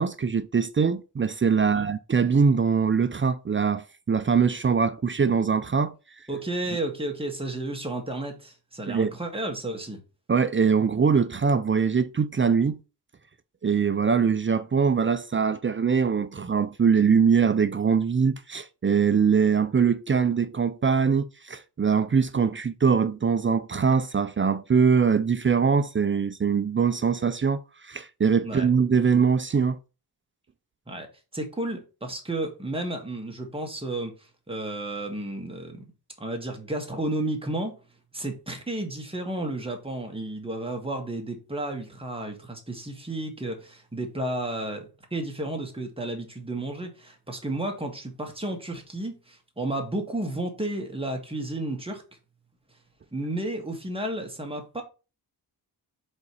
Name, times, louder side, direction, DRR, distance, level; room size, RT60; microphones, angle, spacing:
voice 1, 0.0-5.9 8.9-9.1 10.3-12.8 13.6-29.8, right 6 dB, 30° right, 0.4 m, -22 dB
voice 2, 6.3-10.0 28.4-28.7 30.9-31.1 31.3-35.8 36.2-37.7 38.1-52.0 53.1-54.8, right 1 dB, 15° right, 1.7 m, -32 dB
5.2 x 4.1 x 4.7 m
wide cardioid pair, 110°, 40 cm